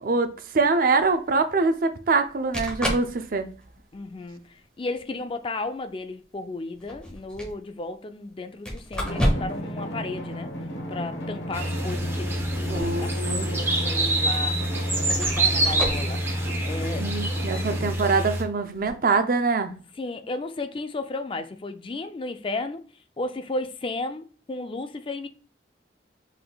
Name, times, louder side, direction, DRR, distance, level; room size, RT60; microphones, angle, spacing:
voice 1, 0.0-3.5 12.7-13.6 16.8-19.7, right 4 dB, 50° right, 0.5 m, -24 dB
sound 1, 1.0-1.1 2.2-2.3 2.5-3.1 3.6-3.9 4.9-5.0 6.7-7.5 8.6-9.7 10.0-10.1 12.3-13.1 13.4-13.5 14.3-14.4 15.0-16.1 18.7-18.9, equal, 5° left, 1.4 m, -30 dB
voice 2, 3.9-10.5 10.9-14.7 15.1-16.2 16.6-17.2 20.0-22.8 23.2-25.3, left 2 dB, 30° left, 0.4 m, -34 dB
Drum, 9.0-18.0, equal, 90° left, 1.2 m, -35 dB
sound 2, 11.5-18.4, right 1 dB, 15° right, 0.8 m, -26 dB
5.0 x 4.0 x 2.2 m
head